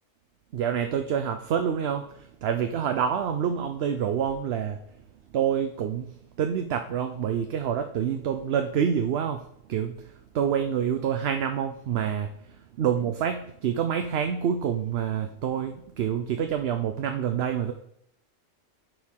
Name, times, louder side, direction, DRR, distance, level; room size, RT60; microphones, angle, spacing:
voice 1, 0.5-4.8 5.3-9.4 9.7-12.3 12.8-17.7, right 8 dB, 65° right, 6 dB, 0.8 m, -27 dB
13.5 x 4.6 x 3.6 m, 0.72 s
omnidirectional pair, 1.2 m